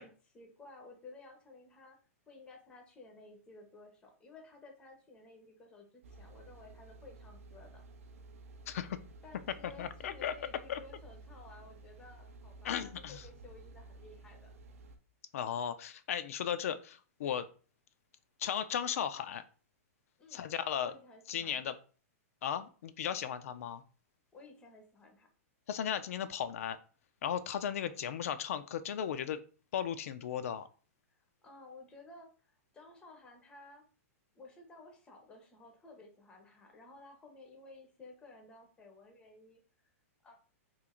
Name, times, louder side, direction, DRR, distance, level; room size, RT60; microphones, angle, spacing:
voice 1, 0.0-2.0 2.3-7.8 9.2-14.5 20.2-20.4 20.8-21.7 24.3-25.3 31.1-33.8 34.3-39.6 40.2-40.4, left 2 dB, 10° left, 2 dB, 0.6 m, -55 dB
sound 1, 6.0-15.0, right 2 dB, 70° right, 0.5 m, -53 dB
voice 2, 8.7-9.0 9.6-10.3 10.7-10.8 12.6-13.2 15.3-17.5 18.4-19.4 20.3-20.9 21.3-21.7 22.4-23.8 25.7-26.8 27.2-29.4 29.7-30.7, left 9 dB, 70° left, 11 dB, 0.4 m, -36 dB
3.0 x 2.4 x 3.6 m, 0.38 s
hypercardioid pair, 160°, 8 cm